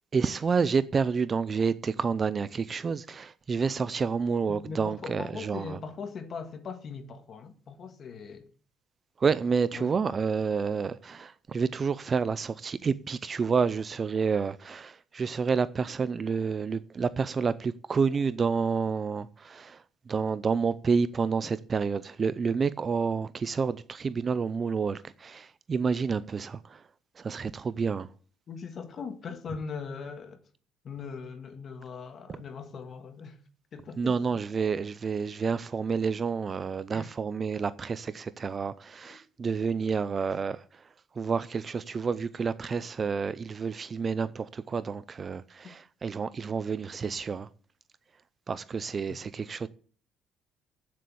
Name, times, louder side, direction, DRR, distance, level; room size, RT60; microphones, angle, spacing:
voice 1, 0.1-5.8 9.2-26.8 27.2-28.1 34.0-40.6 41.2-47.5 48.5-49.7, right 5 dB, 25° right, 0.4 m, -29 dB
voice 2, 4.5-8.5 9.7-10.0 28.5-30.4 30.8-33.4 33.7-34.2 36.9-37.1 39.1-39.2 45.6-45.7 49.1-49.2, left 5 dB, 40° left, 1.6 m, -40 dB
8.5 x 7.6 x 8.4 m
cardioid pair, 145°, 0 cm